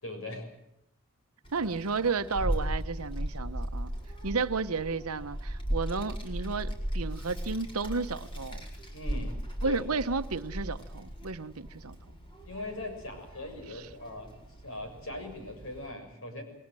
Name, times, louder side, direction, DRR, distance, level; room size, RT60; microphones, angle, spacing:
voice 1, 0.0-0.5 8.9-9.4 9.6-9.8 12.4-14.3 14.6-16.4, left 2 dB, 65° left, 5 dB, 6.7 m, -40 dB
Child speech kid speaking, 1.4-15.9, equal, 25° left, 4.9 m, -37 dB
voice 2, 1.5-3.9 4.2-8.7 9.6-12.0 13.7-13.9, right 4 dB, 85° right, 11 dB, 1.0 m, -32 dB
28.5 x 20.5 x 7.7 m, 0.82 s
head